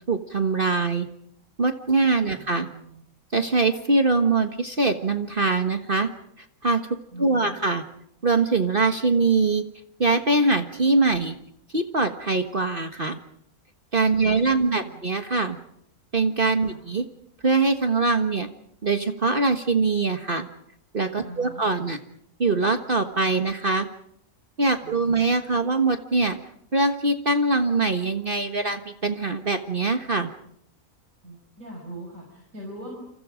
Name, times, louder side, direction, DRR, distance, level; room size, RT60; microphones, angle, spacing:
voice 1, 0.1-1.1 1.6-2.7 3.3-6.1 6.6-6.8 7.2-7.8 8.2-9.6 10.0-11.4 11.7-13.2 13.9-15.6 16.1-17.0 17.4-18.5 18.8-20.5 20.9-22.0 22.4-23.9 24.6-26.4 26.7-30.3, right 3 dB, 35° right, 7 dB, 1.6 m, -23 dB
voice 2, 2.3-3.0 7.1-7.6 14.2-15.0 16.6-16.8 21.2-21.6 24.8-25.2 31.2-33.0, right 1 dB, 60° right, 0 dB, 6.2 m, -41 dB
29.0 x 28.0 x 5.1 m, 0.72 s
omnidirectional pair, 1.5 m